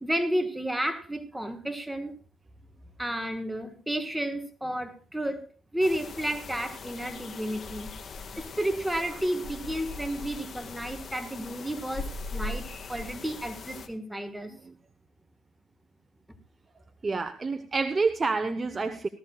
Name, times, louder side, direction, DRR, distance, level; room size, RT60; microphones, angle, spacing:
voice 1, 0.0-2.2 3.0-5.5 5.7-7.9 8.3-14.5, right 1 dB, 5° right, 7 dB, 1.5 m, -32 dB
sound 1, 5.8-13.9, left 3 dB, 50° left, 1.7 m, -40 dB
voice 2, 17.0-19.1, right 4 dB, 30° right, 8 dB, 0.9 m, -28 dB
18.5 x 14.0 x 2.4 m, 0.38 s
cardioid pair, 90°, 0 cm